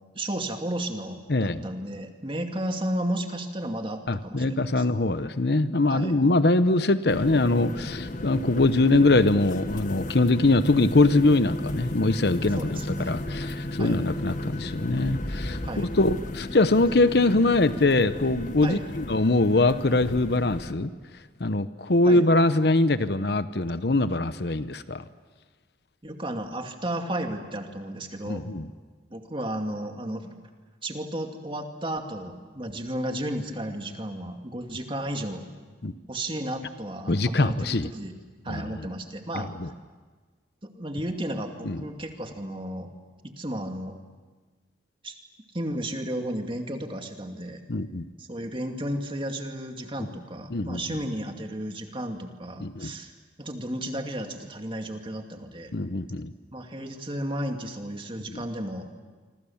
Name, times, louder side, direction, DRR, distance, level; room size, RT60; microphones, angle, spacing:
voice 1, 0.1-4.8 5.9-6.1 12.5-13.2 13.8-14.0 15.6-15.9 18.6-18.8 22.0-22.3 26.0-28.5 29.1-30.3 30.8-35.5 36.1-38.1 38.4-39.5 40.6-42.9 43.2-44.0 45.0-45.2 45.5-47.6 48.2-53.1 53.4-55.7 56.5-58.9, right 1 dB, 30° right, 4 dB, 2.3 m, -33 dB
voice 2, 1.3-1.6 4.1-20.9 21.4-25.0 28.3-28.7 35.8-35.9 37.1-37.9 38.5-38.6 39.6-39.7 41.7-41.8 47.7-48.1 50.5-50.8 52.6-52.9 55.7-56.3 58.3-58.4, left 2 dB, 65° left, 13 dB, 0.9 m, -23 dB
sound 1, 7.1-20.7, left 1 dB, 45° left, 1.6 m, -35 dB
26.0 x 26.0 x 7.2 m, 1.4 s
head